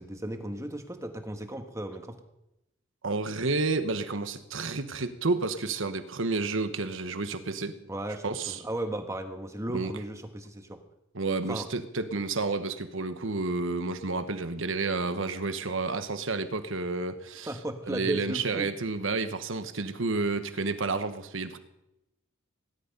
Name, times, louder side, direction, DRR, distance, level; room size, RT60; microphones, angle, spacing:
voice 1, 0.0-2.2 7.9-10.8 11.5-11.7 17.5-18.7, right 1 dB, 15° right, 6 dB, 1.4 m, -35 dB
voice 2, 3.0-7.8 8.2-8.6 9.7-9.9 11.1-17.5 17.9-21.6, right 3 dB, 65° right, 10 dB, 1.2 m, -30 dB
18.0 x 11.5 x 5.4 m, 0.89 s
head